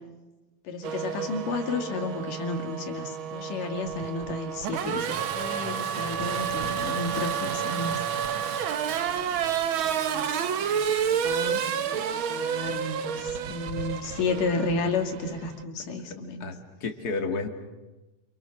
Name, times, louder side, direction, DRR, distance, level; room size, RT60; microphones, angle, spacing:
voice 1, 0.6-8.0 9.0-9.4 10.0-10.4 10.7-16.5, left 3 dB, 75° left, 5 dB, 4.0 m, -32 dB
Race car auto racing / Accelerating revving vroom, 0.8-15.6, right 8 dB, 75° right, 1.2 m, -30 dB
voice 2, 16.4-17.5, left 4 dB, 30° left, 6 dB, 2.2 m, -31 dB
28.5 x 27.5 x 6.5 m, 1.1 s
omnidirectional pair, 3.8 m